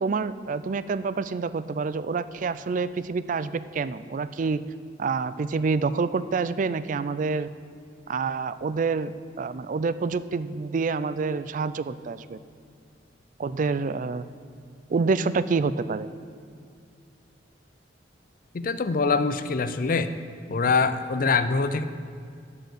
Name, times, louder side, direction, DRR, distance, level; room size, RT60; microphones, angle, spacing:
voice 1, 0.0-4.6 5.0-7.5 8.1-12.4 13.4-14.3 14.9-16.1, right 4 dB, 45° right, 14 dB, 0.3 m, -27 dB
voice 2, 18.5-20.1 20.5-21.8, left 4 dB, 50° left, 12 dB, 0.5 m, -24 dB
12.5 x 4.5 x 8.1 m, 2.3 s
head